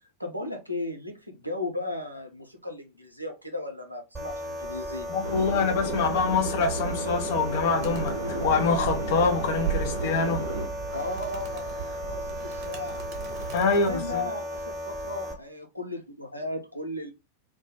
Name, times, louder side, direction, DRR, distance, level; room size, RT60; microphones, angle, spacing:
voice 1, 0.2-5.1 10.9-13.0 13.6-17.1, left 2 dB, 90° right, 0.5 m, -35 dB
sound 1, 4.1-15.3, equal, ahead, 0.9 m, -36 dB
voice 2, 5.1-10.5 13.5-14.2, left 4 dB, 50° left, 0.5 m, -25 dB
Subway metro underground, 5.2-10.7, right 2 dB, 90° left, 0.7 m, -32 dB
Animal, 7.8-14.2, right 9 dB, 45° right, 0.6 m, -37 dB
2.2 x 2.0 x 2.7 m
figure-of-eight pair, 90°, 0 cm